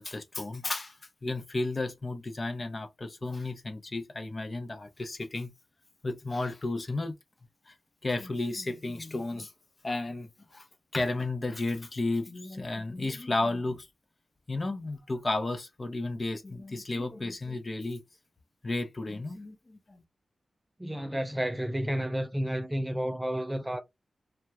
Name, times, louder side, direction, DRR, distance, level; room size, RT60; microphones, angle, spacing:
voice 1, 0.0-5.5 6.0-7.1 7.7-7.8 8.0-9.5 9.8-10.7 10.9-13.9 14.5-18.0 18.6-20.0, left 2 dB, 40° left, 0.5 m, -33 dB
voice 2, 20.8-23.8, equal, 10° right, 0.4 m, -31 dB
2.3 x 2.1 x 2.8 m
cardioid pair, 65°, 0 cm